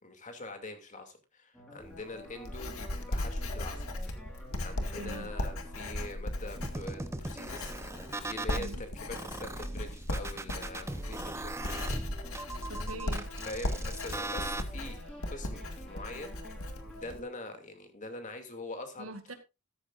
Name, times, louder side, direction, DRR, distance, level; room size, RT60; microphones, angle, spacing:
voice 1, 0.0-3.9 4.6-7.7 8.2-12.0 13.4-16.4 16.9-19.3, left 2 dB, 35° left, 6 dB, 2.5 m, -44 dB
sound 1, 1.5-17.2, equal, 5° left, 4.7 m, -51 dB
Writing, 1.8-17.2, left 1 dB, 85° left, 2.0 m, -37 dB
voice 2, 5.0-5.3 8.5-8.8 12.7-13.3 19.0-19.3, right 1 dB, 70° right, 8 dB, 2.1 m, -43 dB
sound 2, 6.6-8.7 9.1-14.6, right 2 dB, 15° right, 0.9 m, -39 dB
13.5 x 13.0 x 2.5 m, 0.26 s
head